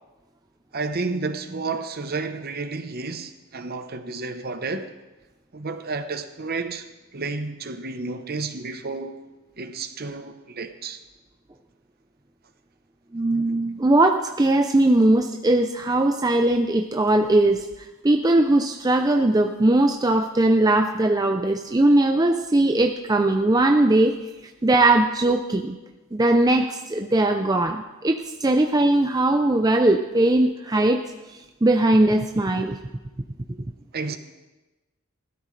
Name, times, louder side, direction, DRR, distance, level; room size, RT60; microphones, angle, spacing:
voice 1, 0.7-4.9 5.5-9.2 9.6-11.0 33.9-34.2, right 3 dB, 45° right, 0.9 m, -31 dB
voice 2, 13.1-17.7 18.0-24.2 24.6-25.7 26.1-31.0 31.6-32.8, right 2 dB, 15° right, 0.5 m, -20 dB
19.5 x 13.0 x 3.2 m
head